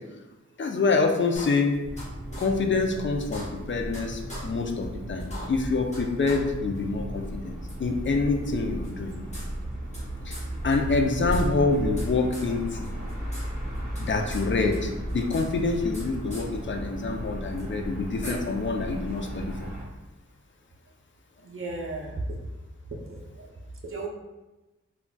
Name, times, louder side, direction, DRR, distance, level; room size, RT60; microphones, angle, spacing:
voice 1, 0.6-1.8 2.4-7.5 7.8-9.1 10.3-10.4 10.6-12.9 14.0-19.5, left 3 dB, 40° left, 2 dB, 0.4 m, -26 dB
sound 1, 1.3-2.0 2.3-2.4 2.8-2.9 3.2-4.0 4.3-4.4 4.8-4.9 5.2-6.0 6.2-6.4 6.7-6.8 7.7-7.8 8.8-10.0 10.3-10.4 10.7-10.8 11.1-12.1 12.3-12.5 12.8-13.4 13.7-14.4 14.7-16.0 16.3-16.4 17.6-17.7 18.2-18.3, equal, 25° left, 1.1 m, -41 dB
sound 2, 1.8-19.8, right 1 dB, 30° right, 1.0 m, -35 dB
voice 2, 21.4-22.4 23.0-23.5 23.8-24.1, right 2 dB, 45° right, 0 dB, 0.6 m, -34 dB
3.9 x 2.3 x 2.2 m, 1.1 s
wide cardioid pair, 75°, 29 cm